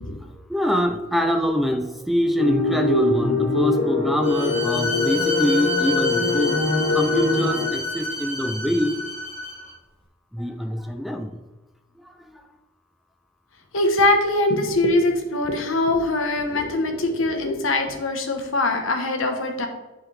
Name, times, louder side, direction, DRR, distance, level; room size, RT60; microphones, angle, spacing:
voice 1, 0.3-6.6 6.9-9.1 10.3-11.4 12.0-12.5, equal, ahead, 5 dB, 0.4 m, -24 dB
sound 1, 2.3-7.7, left 3 dB, 70° left, 1.7 m, -23 dB
Bowed string instrument, 4.2-9.7, left 2 dB, 30° left, 1.5 m, -29 dB
voice 2, 13.7-19.7, left 2 dB, 85° left, 4 dB, 1.0 m, -22 dB
10.0 x 3.9 x 3.3 m, 1.1 s
head